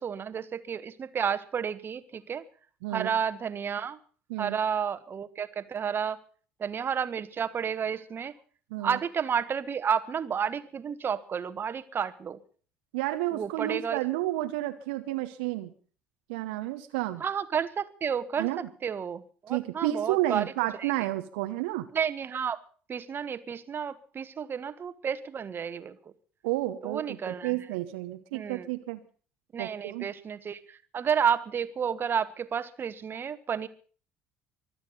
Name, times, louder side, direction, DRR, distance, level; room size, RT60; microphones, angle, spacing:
voice 1, 0.0-2.4 2.9-4.0 4.4-6.2 6.6-8.3 8.8-12.4 13.3-14.0 17.2-18.5 18.8-20.5 20.8-20.9 21.9-22.6 22.9-25.9 26.8-27.5 28.3-28.7 29.5-33.7, right 7 dB, 35° right, 13 dB, 1.3 m, -31 dB
voice 2, 2.8-3.1 4.3-4.6 8.7-9.0 12.9-15.7 16.3-17.2 18.4-18.7 19.5-21.9 26.4-29.0 29.6-30.1, right 16 dB, 70° right, 9 dB, 1.0 m, -31 dB
24.5 x 8.9 x 5.5 m, 0.42 s
figure-of-eight pair, 55°, 6 cm